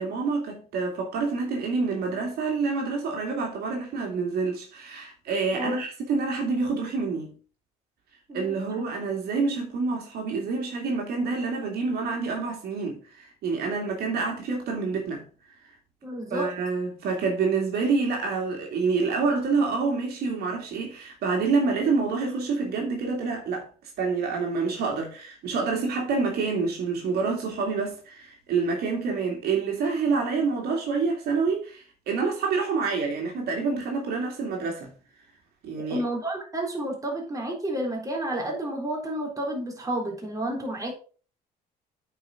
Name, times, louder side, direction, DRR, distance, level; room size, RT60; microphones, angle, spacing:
voice 1, 0.0-7.3 8.3-15.2 16.3-23.7 24.0-34.9 35.6-36.0, right 4 dB, 70° right, 2.4 m, -27 dB
voice 2, 5.5-5.9 8.3-8.9 16.0-16.5 35.9-40.9, right 1 dB, 20° right, 3.6 m, -31 dB
8.4 x 5.1 x 5.0 m
cardioid pair, 110°, 17 cm